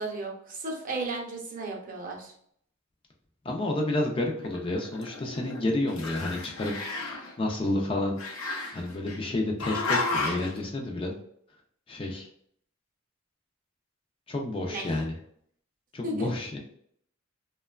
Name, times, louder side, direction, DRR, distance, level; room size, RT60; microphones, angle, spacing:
voice 1, 0.0-2.3 14.7-14.8 16.0-16.3, right 2 dB, 40° right, 0 dB, 0.6 m, -34 dB
voice 2, 3.4-6.7 7.4-8.2 8.7-11.1 11.9-12.3 14.3-15.1 15.9-16.6, left 2 dB, 25° left, 0 dB, 0.4 m, -30 dB
Growling, 4.4-5.6 5.9-7.3 8.2-9.2 9.6-10.5, left 3 dB, 85° left, 0.6 m, -32 dB
2.8 x 2.2 x 2.3 m, 0.66 s
head